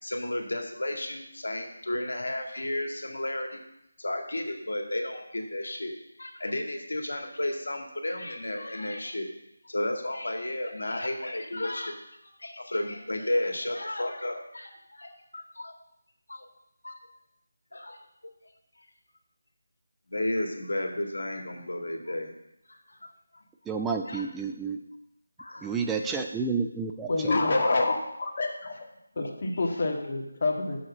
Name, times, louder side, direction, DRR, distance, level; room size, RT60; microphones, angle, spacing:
voice 1, 0.0-3.6 4.0-9.3 9.6-12.0 12.2-15.8 16.3-16.5 16.8-17.0 17.7-18.0 20.1-22.3 22.7-23.1 24.1-24.2 25.4-26.2 29.6-29.8, left 1 dB, 80° left, 2 dB, 1.9 m, -33 dB
voice 2, 23.7-24.8 25.6-27.5, right 5 dB, 5° right, 3 dB, 0.4 m, -30 dB
voice 3, 27.1-28.7 29.1-30.8, left 2 dB, 40° left, 0 dB, 1.7 m, -27 dB
6.5 x 6.4 x 6.8 m, 0.81 s
figure-of-eight pair, 165°, 0 cm